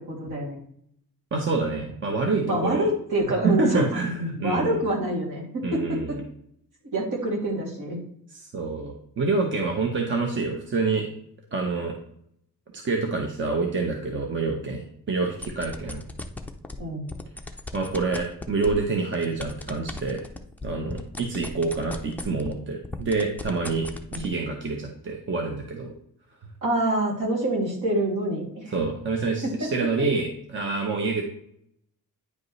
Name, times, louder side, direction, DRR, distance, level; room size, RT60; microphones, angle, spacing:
voice 1, 0.1-0.6 2.4-6.2 6.9-8.0 16.8-17.1 24.1-24.3 26.6-28.8 29.4-29.7, right 1 dB, 70° right, -3 dB, 2.7 m, -26 dB
voice 2, 1.3-2.9 3.4-4.8 5.6-6.2 8.3-11.1 11.5-11.9 12.7-16.0 17.7-20.2 20.6-23.9 24.2-25.9 28.7-31.2, right 3 dB, 35° right, 2 dB, 0.8 m, -27 dB
sound 1, 15.3-16.8 17.1-22.6 22.8-24.3, left 2 dB, 5° left, 0.4 m, -36 dB
9.5 x 5.1 x 3.2 m, 0.68 s
wide cardioid pair, 180°, 33 cm